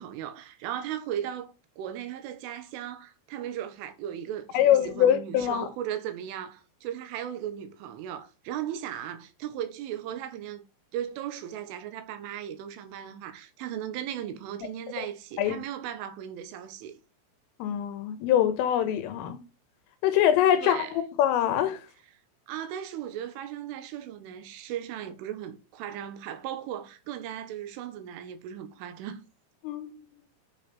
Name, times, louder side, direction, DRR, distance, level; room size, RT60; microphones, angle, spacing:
voice 1, 0.0-10.6 10.9-17.0 20.6-21.0 22.5-29.2, right 10 dB, 75° right, 3.9 m, -37 dB
voice 2, 4.5-5.7 15.4-15.6 17.6-19.4 20.0-20.9 21.2-21.8 29.6-29.9, left 10 dB, 80° left, 3.8 m, -23 dB
13.0 x 8.1 x 5.6 m
omnidirectional pair, 5.9 m